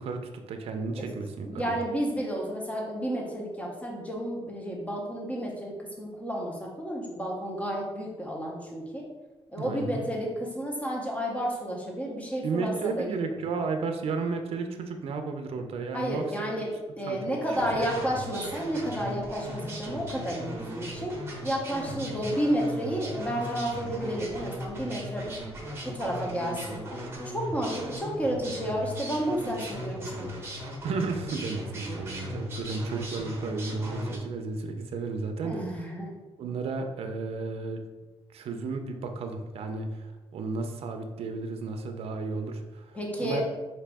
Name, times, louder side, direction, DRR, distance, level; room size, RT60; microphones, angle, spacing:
voice 1, 0.0-1.7 9.6-10.1 12.4-16.5 17.1-17.4 17.8-17.9 22.0-22.1 30.8-35.6 36.4-37.8 38.3-43.4, right 4 dB, 70° right, 5 dB, 0.5 m, -33 dB
voice 2, 1.4-9.1 9.5-13.1 15.9-25.3 25.8-26.8 27.2-30.3 35.4-36.1 42.9-43.4, equal, 15° left, -1 dB, 0.8 m, -31 dB
sound 1, 17.5-34.2, equal, 25° right, 0.9 m, -38 dB
4.9 x 2.7 x 3.4 m, 1.2 s
wide cardioid pair, 160°, 11 cm